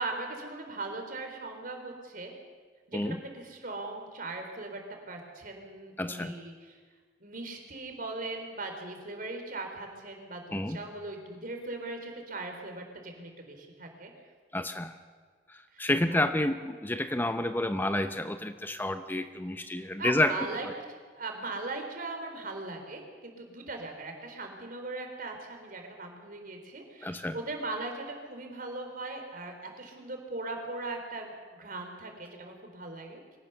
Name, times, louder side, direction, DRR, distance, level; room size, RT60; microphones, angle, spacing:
voice 1, 0.0-2.3 2.9-4.8 5.1-6.8 7.2-14.1 15.7-16.3 19.8-33.2, right 2 dB, 55° right, 4 dB, 3.9 m, -39 dB
voice 2, 6.0-6.3 10.5-10.8 14.5-15.0 15.5-20.4 27.0-27.3, left 1 dB, 10° left, 9 dB, 0.7 m, -29 dB
23.5 x 17.5 x 6.9 m, 1.5 s
head